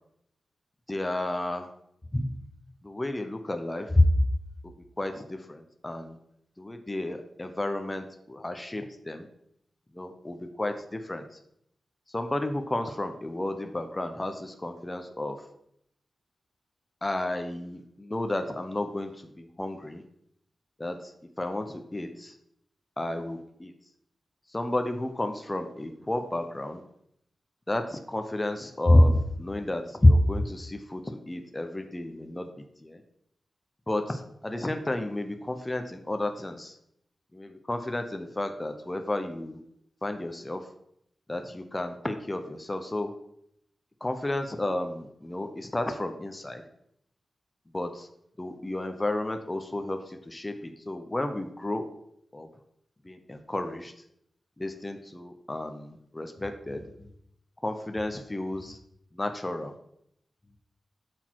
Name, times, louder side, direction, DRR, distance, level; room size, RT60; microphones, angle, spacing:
voice 1, 0.9-1.7 2.1-2.4 2.8-4.3 5.0-6.2 6.6-9.3 9.9-11.3 12.1-15.4 17.0-20.0 20.8-21.1 21.4-22.3 23.0-23.7 24.5-26.8 27.7-32.5 32.8-33.0 33.9-36.8 37.3-39.6 40.0-40.7 41.3-43.1 44.0-46.6 47.7-48.1 48.4-51.9 52.3-52.5 53.0-53.9 54.6-57.1 57.6-58.8 59.1-59.7, left 1 dB, 15° left, 6 dB, 0.6 m, -30 dB
8.4 x 6.2 x 4.5 m, 0.73 s
wide cardioid pair, 165°, 0 cm